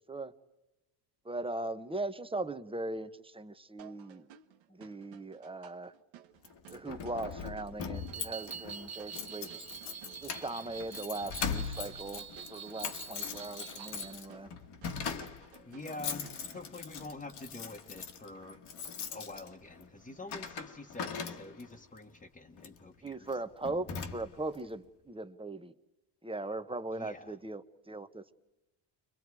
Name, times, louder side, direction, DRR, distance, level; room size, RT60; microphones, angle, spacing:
voice 1, 1.2-4.3 4.7-5.9 6.7-9.7 10.2-14.5 23.0-23.9 24.1-25.7 26.2-28.3, right 2 dB, 10° right, 11 dB, 0.9 m, -39 dB
sound 1, 3.8-16.8, right 10 dB, 80° right, 1.3 m, -57 dB
Keys jangling, 6.4-21.8 22.6-22.8 23.3-23.4 23.6-24.6, left 6 dB, 60° left, 1.8 m, -41 dB
sound 2, 7.9-14.2, right 7 dB, 35° right, 1.3 m, -46 dB
voice 2, 15.7-18.6 19.1-23.3 26.9-27.4, left 2 dB, 20° left, 0 dB, 1.3 m, -46 dB
30.0 x 24.5 x 4.8 m, 0.95 s
cardioid pair, 90°, 45 cm